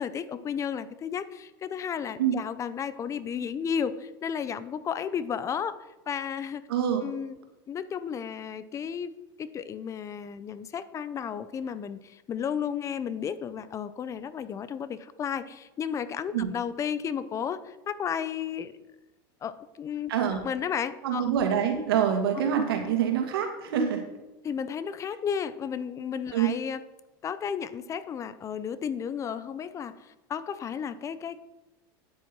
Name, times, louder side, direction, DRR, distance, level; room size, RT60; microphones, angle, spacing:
voice 1, 0.0-5.8 6.1-6.6 7.0-7.4 7.7-9.1 9.4-18.8 19.4-20.1 20.4-21.3 24.4-26.8 27.2-31.4, left 7 dB, 25° left, 14 dB, 0.6 m, -33 dB
voice 2, 6.7-7.0 16.3-16.5 20.1-20.4 21.0-24.0 26.3-26.5, right 8 dB, 90° right, 4 dB, 2.1 m, -25 dB
9.7 x 8.5 x 4.6 m, 0.99 s
supercardioid pair, 135°, 12 cm